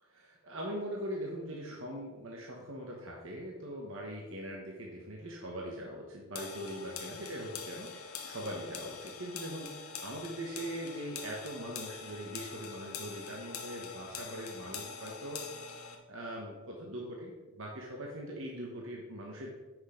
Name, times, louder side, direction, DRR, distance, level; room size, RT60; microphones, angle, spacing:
voice 1, 0.0-15.4 16.1-19.5, equal, 60° right, -1 dB, 1.2 m, -41 dB
sound 1, 6.4-16.0, left 6 dB, 75° left, 1.1 m, -44 dB
8.1 x 6.3 x 5.0 m, 1.3 s
head